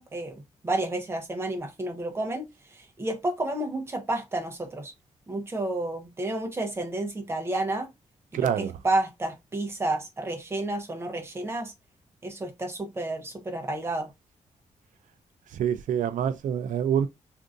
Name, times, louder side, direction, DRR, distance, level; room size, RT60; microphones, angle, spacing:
voice 1, 0.0-2.5 2.7-4.9 5.3-7.9 8.3-11.7 12.2-14.1, right 2 dB, 20° right, 0.7 m, -31 dB
voice 2, 8.3-8.7 15.5-17.1, right 9 dB, 85° right, 0.4 m, -26 dB
3.6 x 2.6 x 2.5 m
wide cardioid pair, 155°, 13 cm